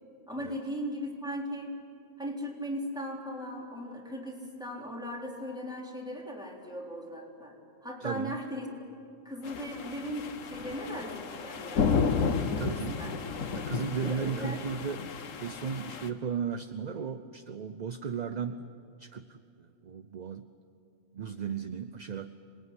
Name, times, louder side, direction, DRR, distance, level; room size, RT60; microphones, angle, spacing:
voice 1, 0.3-1.8 2.2-7.6 7.8-8.7 9.2-12.1 12.7-13.2 14.0-14.6, equal, 5° right, -2 dB, 3.8 m, -38 dB
voice 2, 8.0-8.4 12.6-12.9 13.5-15.0 15.4-18.7 19.0-19.4 19.8-20.5 21.1-22.3, right 6 dB, 45° right, 10 dB, 0.7 m, -35 dB
sound 1, 9.4-16.1, left 5 dB, 85° left, 1.5 m, -32 dB
26.5 x 20.0 x 9.8 m, 2.5 s
omnidirectional pair, 1.3 m